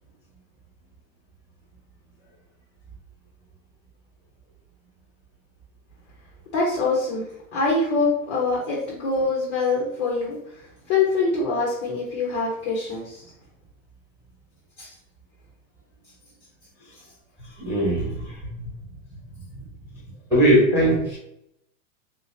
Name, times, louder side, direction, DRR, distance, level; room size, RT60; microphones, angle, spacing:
voice 1, 6.5-7.2 7.5-10.4 10.9-13.2 14.8-14.9, left 3 dB, 20° left, -3 dB, 0.4 m, -24 dB
voice 2, 17.6-18.8 19.5-19.6 20.3-21.2, right 1 dB, 5° right, -5 dB, 0.8 m, -21 dB
3.4 x 2.8 x 3.0 m, 0.78 s
supercardioid pair, 165°, 42 cm